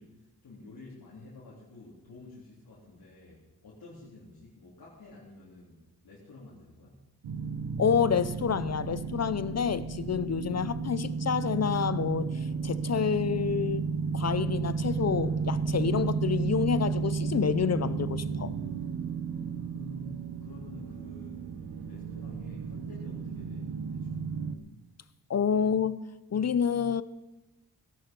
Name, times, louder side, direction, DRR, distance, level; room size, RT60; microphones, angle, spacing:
voice 1, 0.0-7.1 19.3-21.5 21.9-24.3, left 2 dB, 65° left, 3.6 m, -50 dB
sound 1, 7.2-24.6, right 5 dB, 85° right, 1.2 m, -33 dB
voice 2, 7.8-13.9 14.1-18.5 25.3-26.0 26.3-27.0, left 7 dB, 45° left, 0.6 m, -28 dB
17.5 x 11.0 x 5.4 m
cardioid pair, 85°, 38 cm